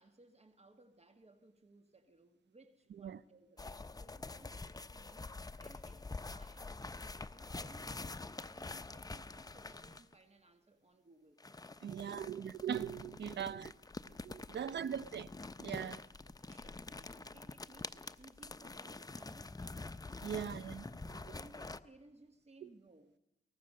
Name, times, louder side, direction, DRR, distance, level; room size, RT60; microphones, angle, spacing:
voice 1, 0.0-5.3 5.6-11.4 11.9-12.4 13.4-13.7 14.5-15.1 15.8-19.8 20.3-20.6 21.3-23.2, right 2 dB, 35° right, 1.5 m, -62 dB
sound 1, 3.6-10.1 11.4-21.8, left 3 dB, 20° left, 0.7 m, -47 dB
voice 2, 11.8-13.7 14.2-15.3 15.6-16.0 20.2-21.4 22.6-22.7, right 8 dB, 75° right, 0.6 m, -40 dB
23.0 x 19.0 x 6.6 m
cardioid pair, 60°, 18 cm